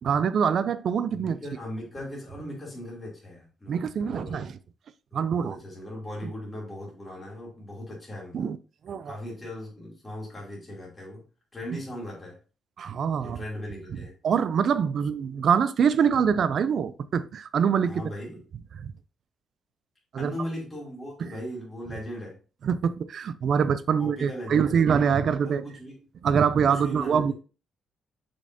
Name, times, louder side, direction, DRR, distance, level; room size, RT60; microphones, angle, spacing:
voice 1, 0.0-1.4 3.7-4.6 5.1-5.6 8.3-8.6 8.8-9.2 11.7-11.8 12.8-13.4 13.9-14.0 14.2-18.1 18.8-18.9 20.1-20.3 21.2-21.4 22.6-25.7 26.2-27.3, right 7 dB, 45° right, 0.4 m, -24 dB
voice 2, 1.1-4.4 5.1-8.5 9.0-11.2 11.5-12.4 13.2-14.1 17.9-18.4 20.2-22.3 24.0-24.8 25.4-26.0 26.7-27.3, left 1 dB, 10° left, 3.0 m, -38 dB
6.9 x 5.3 x 2.8 m
cardioid pair, 165°, 0 cm